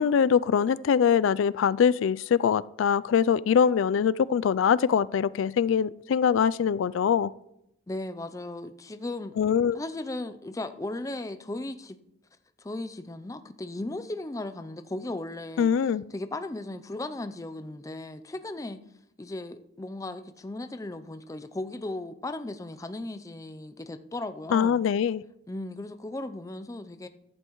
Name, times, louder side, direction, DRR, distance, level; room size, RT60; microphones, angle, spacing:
voice 1, 0.0-7.3 9.4-9.8 15.6-16.0 24.5-25.2, left 7 dB, 90° left, 0.3 m, -23 dB
voice 2, 7.9-9.4 9.7-12.0 12.6-15.7 16.1-18.8 19.2-24.8 25.5-27.1, left 2 dB, 15° left, 0.4 m, -36 dB
14.0 x 11.0 x 3.1 m
head